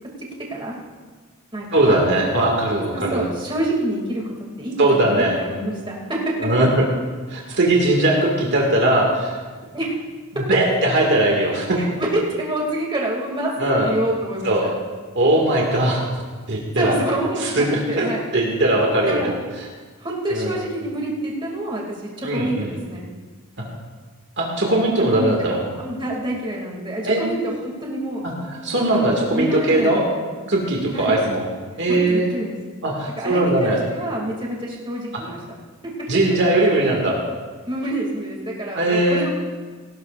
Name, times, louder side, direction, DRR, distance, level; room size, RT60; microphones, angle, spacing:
voice 1, 1.7-3.3 4.8-5.4 6.4-6.9 7.3-9.3 10.3-11.8 13.6-13.9 14.4-14.7 15.2-16.0 16.5-17.0 17.4-18.1 18.3-19.3 20.3-20.5 22.2-22.7 24.4-25.6 27.1-27.2 28.2-30.0 30.5-31.5 31.8-32.3 32.8-33.8 35.1-35.2 36.1-37.2 38.7-39.3, right 1 dB, 55° right, -1 dB, 1.9 m, -19 dB
voice 2, 2.9-6.5 9.7-10.0 10.3-10.9 11.8-14.7 16.7-18.3 18.6-18.7 19.1-19.3 20.0-23.1 25.1-25.4 25.8-28.2 28.9-30.2 30.9-31.2 31.9-32.6 33.2-35.4 35.8-35.9 37.7-39.3, right 1 dB, 25° right, -2 dB, 2.4 m, -27 dB
18.0 x 17.0 x 2.5 m, 1.4 s
head